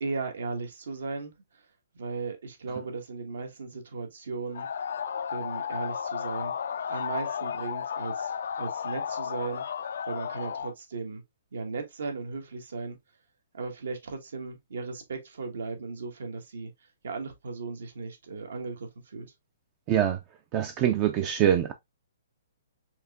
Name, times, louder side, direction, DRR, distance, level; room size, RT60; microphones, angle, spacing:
voice 1, 0.0-1.3 1.9-4.7 5.3-6.5 6.9-8.3 8.6-9.6 10.1-11.2 11.5-13.0 13.5-16.7 17.0-19.3, right 4 dB, 75° right, 1.2 m, -36 dB
scream conv chaos mix, 4.5-10.7, left 7 dB, 65° left, 0.3 m, -33 dB
voice 2, 19.9-20.2 20.5-21.7, right 10 dB, 25° right, 0.3 m, -24 dB
4.5 x 2.9 x 2.3 m
hypercardioid pair, 160°, 0 cm